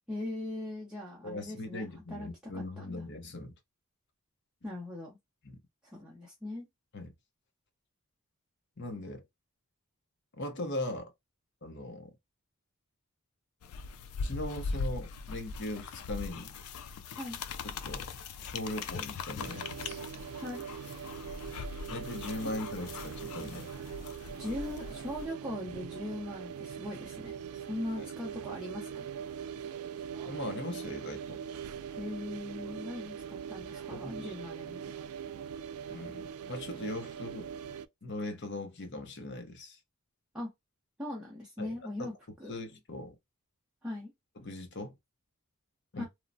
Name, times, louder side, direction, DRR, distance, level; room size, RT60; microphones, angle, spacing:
voice 1, 0.1-2.3 2.5-3.0 4.6-5.2 5.8-6.7 17.2-17.4 20.4-20.6 24.3-29.1 32.0-34.9 40.3-40.5 41.0-42.1 42.4-42.6 43.8-44.1 45.9-46.1, left 1 dB, 5° right, 0.6 m, -40 dB
voice 2, 1.2-3.5 5.4-5.6 6.9-7.1 8.8-9.2 10.4-11.1 11.6-12.1 14.2-16.5 17.1-17.2 17.6-18.1 18.4-19.7 21.9-23.7 28.0-28.1 30.2-31.4 33.9-34.3 35.9-37.5 38.0-39.8 41.6-41.7 42.0-42.1 42.5-43.2 44.4-45.0 45.9-46.1, left 1 dB, 55° left, 0.7 m, -39 dB
sound 1, 13.6-25.3, left 4 dB, 85° left, 0.4 m, -40 dB
sound 2, 19.4-37.9, right 8 dB, 85° right, 0.3 m, -42 dB
3.1 x 2.0 x 2.5 m
head